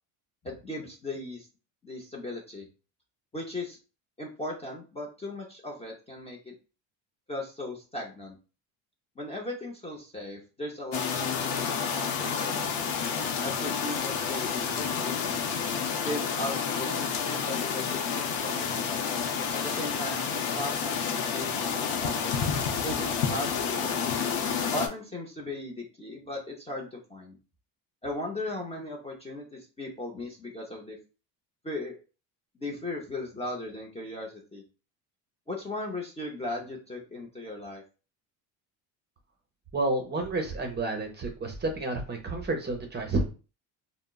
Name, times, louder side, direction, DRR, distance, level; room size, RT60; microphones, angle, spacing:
voice 1, 0.4-1.5 1.8-2.7 3.3-3.8 4.2-6.6 7.3-8.4 9.2-12.8 13.4-15.4 16.0-18.9 19.5-22.4 22.8-24.0 24.7-27.4 28.0-31.0 31.6-32.0 32.5-34.6 35.5-37.8, left 1 dB, 15° left, -1 dB, 0.5 m, -37 dB
sound 1, 10.9-24.9, left 6 dB, 80° left, 0.7 m, -29 dB
voice 2, 39.7-43.3, right 2 dB, 25° right, 3 dB, 0.6 m, -30 dB
3.5 x 2.0 x 2.3 m, 0.33 s
cardioid pair, 115°, 42 cm